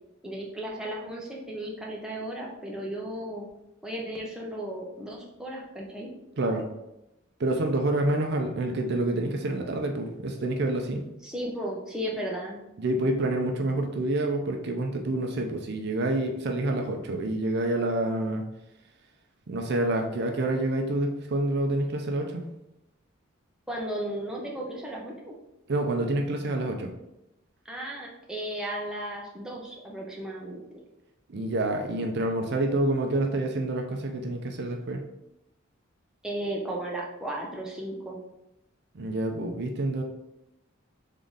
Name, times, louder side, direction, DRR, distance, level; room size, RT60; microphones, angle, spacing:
voice 1, 0.2-3.5 3.8-6.1 11.2-12.6 23.7-25.3 27.6-30.8 36.2-38.2, right 1 dB, 5° right, -3 dB, 0.7 m, -35 dB
voice 2, 7.4-11.1 12.8-18.4 19.5-22.4 25.7-26.9 31.3-35.0 38.9-40.0, right 1 dB, 55° right, 3 dB, 0.5 m, -27 dB
3.7 x 3.6 x 3.9 m, 0.89 s
head